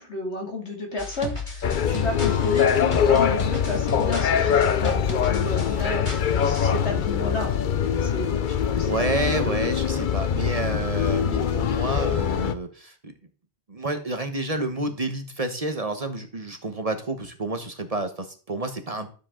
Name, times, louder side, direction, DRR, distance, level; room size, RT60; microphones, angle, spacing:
voice 1, 0.0-7.5 8.0-8.4 8.6-9.0 9.3-9.5 11.1-11.3, left 2 dB, 80° left, 1 dB, 2.8 m, -32 dB
sound 1, 1.0-6.8, left 3 dB, 25° left, 1.9 m, -35 dB
sound 2, 1.6-12.5, left 8 dB, 55° left, 0.7 m, -23 dB
voice 2, 5.6-5.9 8.8-13.1 13.7-19.1, right 2 dB, 35° right, 7 dB, 1.1 m, -29 dB
12.0 x 7.4 x 3.8 m, 0.39 s
omnidirectional pair, 1.1 m